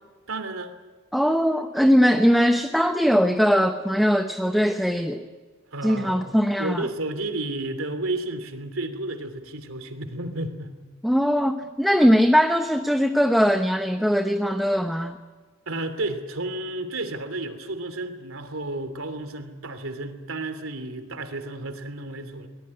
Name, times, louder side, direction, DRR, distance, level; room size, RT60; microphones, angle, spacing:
voice 1, 0.3-0.7 5.7-10.8 15.7-22.5, right 2 dB, 85° right, 3.0 m, -32 dB
voice 2, 1.1-5.2 5.8-6.9 11.0-15.2, equal, ahead, 0.9 m, -20 dB
23.0 x 20.0 x 9.9 m
head